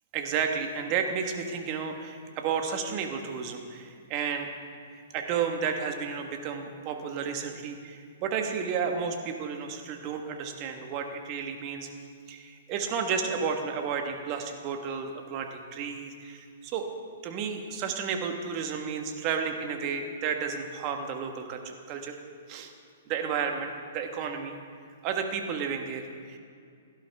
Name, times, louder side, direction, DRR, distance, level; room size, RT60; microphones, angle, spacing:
voice 1, 0.1-4.5 4.9-11.9 12.3-16.9 17.2-22.2 22.5-22.7 23.1-24.6 25.0-26.4, right 6 dB, 40° right, 4 dB, 1.5 m, -32 dB
17.0 x 11.5 x 3.6 m, 2.3 s
hypercardioid pair, 120°, 0 cm